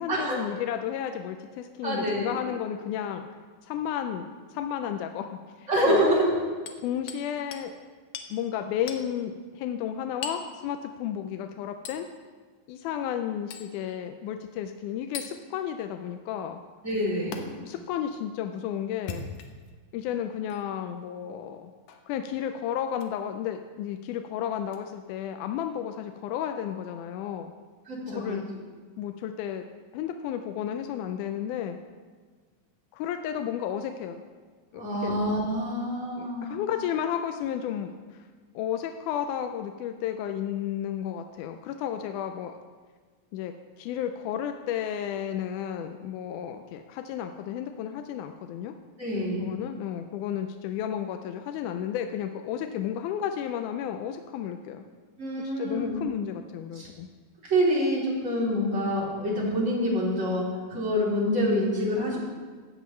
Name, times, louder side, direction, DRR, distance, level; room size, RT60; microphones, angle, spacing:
voice 1, 0.0-3.2 3.6-6.2 6.8-7.7 8.3-12.1 12.7-16.6 17.6-19.3 19.9-21.7 22.1-27.5 28.1-28.4 29.0-29.6 29.9-31.8 32.9-34.2 34.7-35.2 36.2-38.3 38.6-42.5 43.3-43.5 43.8-48.7 49.4-54.8 55.4-57.1, left 9 dB, 85° left, 6 dB, 2.1 m, -32 dB
voice 2, 1.8-2.3 5.7-6.3 16.8-17.5 27.9-28.4 34.7-36.6 49.0-49.5 55.2-56.0 56.7-56.9 57.5-60.4 60.7-62.2, equal, 25° right, -6 dB, 3.3 m, -26 dB
Hammer, 6.7-7.3 7.5-7.7 8.1-8.3 8.9-9.1 10.2-10.5 11.9-12.0 13.5-13.7 15.1-15.3 17.3-17.4 18.9-19.7 20.5-20.6 21.9-22.1 22.9-23.1 24.7-24.8, left 6 dB, 70° left, 1.7 m, -39 dB
15.5 x 8.9 x 3.2 m, 1.5 s
omnidirectional pair, 3.5 m